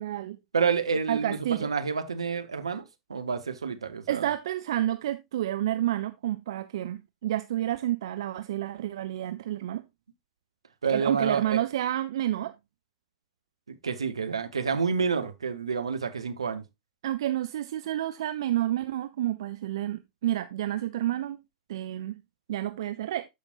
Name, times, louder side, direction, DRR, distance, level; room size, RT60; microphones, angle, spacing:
voice 1, 0.0-0.4 1.1-1.7 4.1-9.8 10.9-12.5 17.0-21.4 21.7-22.2 22.5-23.3, right 13 dB, 55° right, 0.5 m, -30 dB
voice 2, 0.5-4.2 10.8-11.6 13.7-16.6, right 5 dB, 75° right, 1.0 m, -29 dB
13.0 x 5.1 x 2.5 m
figure-of-eight pair, 95°, 3 cm